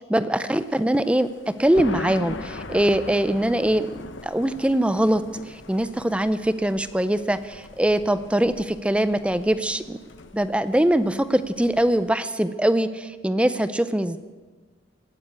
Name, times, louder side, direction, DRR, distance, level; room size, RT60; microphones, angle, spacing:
voice 1, 0.1-1.3 1.6-3.9 4.2-10.0 10.3-14.2, right 1 dB, 5° right, 13 dB, 0.4 m, -22 dB
Thunder, 0.6-12.1, left 2 dB, 70° left, 1.0 m, -40 dB
17.0 x 9.5 x 8.2 m, 1.4 s
head